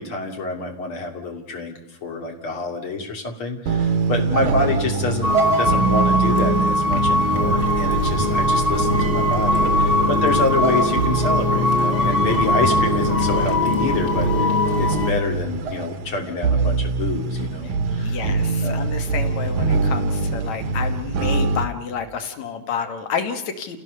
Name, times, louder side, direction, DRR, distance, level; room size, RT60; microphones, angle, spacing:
voice 1, 0.0-1.7 2.0-14.5 14.8-18.2 18.6-18.8, left 3 dB, 45° left, 2 dB, 3.7 m, -27 dB
sound 1, 3.7-21.6, right 4 dB, 85° right, 2.8 m, -24 dB
sound 2, 5.2-15.1, left 1 dB, 20° left, 1.8 m, -21 dB
sound 3, 7.4-8.3 8.8-10.2 10.5-13.0, right 2 dB, 30° right, 4.3 m, -41 dB
voice 2, 18.0-23.8, left 6 dB, 70° left, 6 dB, 2.8 m, -29 dB
30.0 x 16.5 x 6.7 m, 0.89 s
omnidirectional pair, 3.4 m